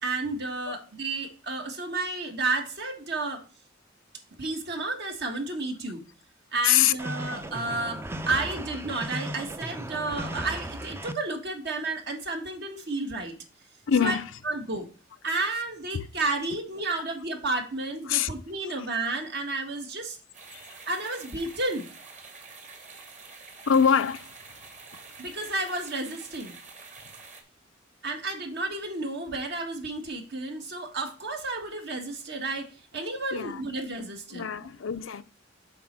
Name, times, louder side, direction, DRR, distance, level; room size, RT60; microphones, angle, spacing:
voice 1, 0.0-3.4 4.4-6.0 6.5-13.4 14.0-14.2 14.4-14.9 15.2-20.2 20.9-21.9 25.2-26.6 28.0-34.5, right 2 dB, 60° right, 1.6 m, -31 dB
sound 1, 7.0-11.1, right 1 dB, 15° right, 0.5 m, -36 dB
voice 2, 13.9-14.3 15.9-16.1 16.9-17.0 18.1-18.3 20.5-20.6 23.7-24.3 33.3-33.6 34.3-35.2, left 8 dB, 85° left, 0.6 m, -24 dB
sound 2, 20.3-27.4, right 4 dB, 40° right, 1.7 m, -47 dB
7.6 x 4.2 x 5.9 m
head